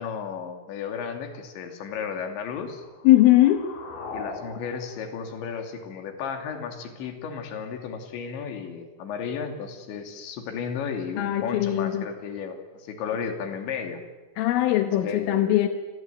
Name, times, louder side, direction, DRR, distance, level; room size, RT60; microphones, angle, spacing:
voice 1, 0.0-2.8 4.1-14.0 15.0-15.5, left 6 dB, 70° left, 5 dB, 5.0 m, -34 dB
sound 1, 2.6-6.4, left 3 dB, 45° left, 5.1 m, -42 dB
voice 2, 3.1-3.7 11.2-12.1 14.4-15.7, left 14 dB, 85° left, 7 dB, 3.8 m, -20 dB
27.5 x 20.5 x 9.3 m, 1.2 s
omnidirectional pair, 5.6 m